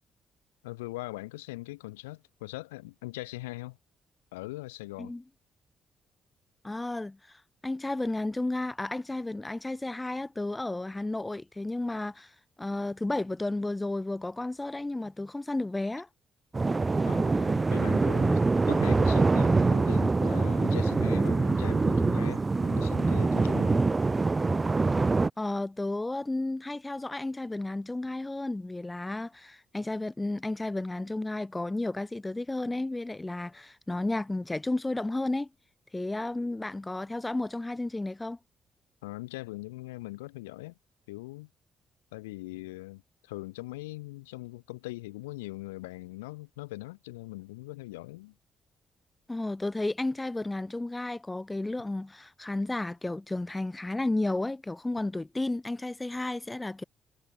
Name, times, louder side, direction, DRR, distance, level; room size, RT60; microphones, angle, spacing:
voice 1, 0.6-3.8 4.3-5.1 17.0-18.4 18.6-23.8 39.0-40.7 41.1-41.5 42.1-48.3, left 20 dB, 80° left, 2.9 m, -41 dB
voice 2, 6.6-16.1 25.4-35.5 35.9-38.4 49.3-56.8, left 2 dB, 15° left, 1.2 m, -32 dB
sound 1, 16.5-25.3, right 3 dB, 30° right, 0.3 m, -24 dB
hypercardioid pair, 45°, 0 cm